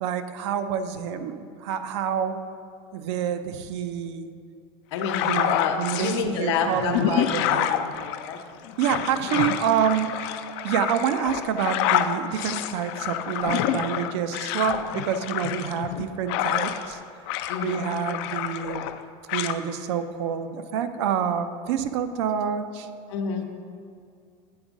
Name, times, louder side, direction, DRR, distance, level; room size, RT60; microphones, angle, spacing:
voice 1, 0.0-2.4 2.9-4.3 5.3-8.0 8.8-10.3 10.6-17.0 17.6-18.8 19.3-22.9, right 8 dB, 70° right, 10 dB, 0.5 m, -27 dB
voice 2, 4.9-7.3 7.9-8.4 17.5-17.9 23.1-23.4, left 6 dB, 80° left, 4 dB, 0.8 m, -28 dB
sound 1, 5.0-6.2 6.7-17.0 17.3-19.0 19.3-19.6, left 11 dB, 60° left, 0.4 m, -28 dB
8.7 x 3.5 x 5.1 m, 2.4 s
supercardioid pair, 155°, 15 cm